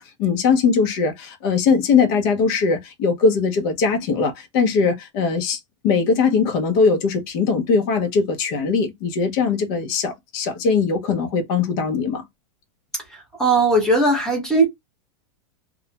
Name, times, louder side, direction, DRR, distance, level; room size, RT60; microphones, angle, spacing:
voice 1, 0.0-5.6 5.8-12.3, left 5 dB, 40° left, 0.6 m, -20 dB
voice 2, 13.1-14.7, right 2 dB, 5° left, 0.7 m, -18 dB
2.3 x 2.1 x 2.7 m
supercardioid pair, 160°, 16 cm